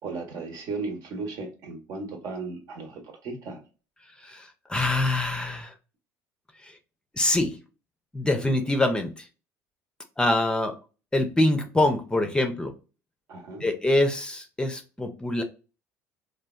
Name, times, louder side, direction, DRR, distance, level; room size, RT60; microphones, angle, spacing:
voice 1, 0.0-3.6 13.3-13.6, right 3 dB, 60° right, 1.0 m, -35 dB
voice 2, 4.2-5.7 6.6-6.8 7.1-7.6 8.1-9.3 10.2-10.8 11.1-12.7 13.6-15.4, left 1 dB, 10° left, 0.5 m, -25 dB
3.1 x 2.2 x 2.2 m
supercardioid pair, 90°, 7 cm